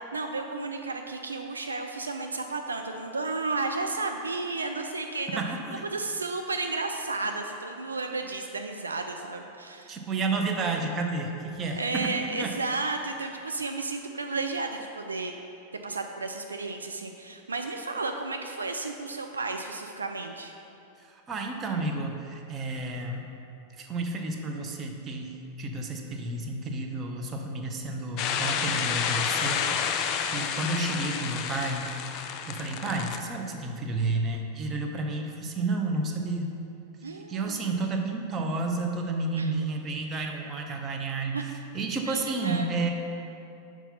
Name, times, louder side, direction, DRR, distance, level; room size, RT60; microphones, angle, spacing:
voice 1, 0.1-5.4 5.9-10.0 11.8-15.3 15.8-20.5 37.0-37.6 39.3-39.5 41.3-41.4 42.1-42.7, right 3 dB, 75° right, 4 dB, 0.3 m, -33 dB
voice 2, 5.4-5.8 9.9-12.6 21.1-23.3 23.7-30.0 30.3-31.9 32.5-36.5 37.1-42.9, right 3 dB, 25° right, 2 dB, 0.7 m, -31 dB
sound 1, 28.2-33.2, left 7 dB, 40° left, 0.4 m, -30 dB
5.7 x 4.6 x 5.5 m, 2.7 s
figure-of-eight pair, 90°, 0 cm